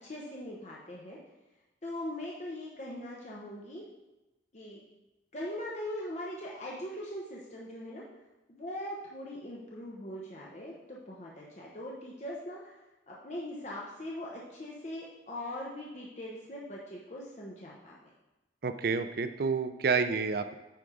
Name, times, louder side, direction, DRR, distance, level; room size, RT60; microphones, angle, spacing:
voice 1, 0.0-1.2 1.8-3.8 4.5-4.8 5.3-8.0 8.5-12.7 13.1-17.9, left 1 dB, 40° left, -4 dB, 0.9 m, -41 dB
voice 2, 18.6-20.5, right 5 dB, 55° right, 10 dB, 0.4 m, -29 dB
9.0 x 3.5 x 4.9 m, 1.0 s
head